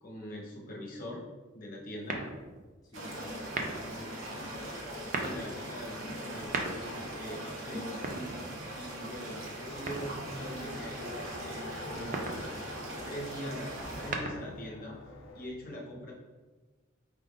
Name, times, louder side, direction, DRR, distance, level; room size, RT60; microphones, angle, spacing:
voice 1, 0.0-1.2 1.5-2.2 5.2-12.5 13.1-15.0 15.3-16.1, equal, 45° left, -2 dB, 0.8 m, -42 dB
sound 1, 2.0-2.7 3.4-4.0 4.9-5.4 6.3-7.1 7.9-8.8 9.9-10.5 11.9-12.5 13.8-14.7, right 3 dB, 40° right, 0.4 m, -37 dB
voice 2, 2.8-4.8 15.6-15.9, equal, 20° left, -7 dB, 0.5 m, -50 dB
sound 2, 2.9-14.1, right 1 dB, 80° right, 0.9 m, -41 dB
Race car auto racing, 10.3-15.5, left 2 dB, 70° left, 0.4 m, -47 dB
4.9 x 3.4 x 2.4 m, 1.3 s
head